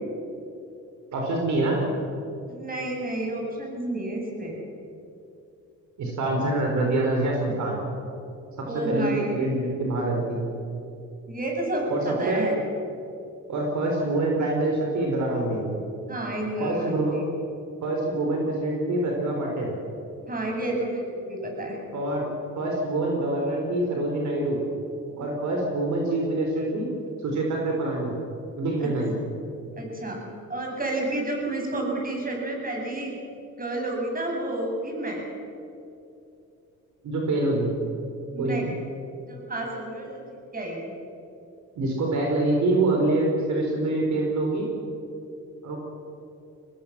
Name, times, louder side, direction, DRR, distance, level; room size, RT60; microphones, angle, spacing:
voice 1, 1.1-1.8 6.0-7.8 8.6-10.4 11.9-12.5 13.5-15.7 16.6-17.2 17.8-19.7 21.9-24.6 25.2-26.9 27.2-28.1 28.6-29.2 37.0-37.7 38.4-38.7 41.8-44.7 45.6-45.8, right 2 dB, 70° right, 0 dB, 4.6 m, -25 dB
voice 2, 2.5-4.6 8.7-9.5 11.3-12.6 16.1-17.2 20.3-21.8 28.8-28.9 29.8-30.2 30.5-33.2 33.6-35.2 38.3-38.7 39.3-40.2 40.5-41.0, right 1 dB, 30° right, 0 dB, 7.6 m, -30 dB
23.5 x 19.5 x 7.5 m, 2.7 s
cardioid pair, 90°, 30 cm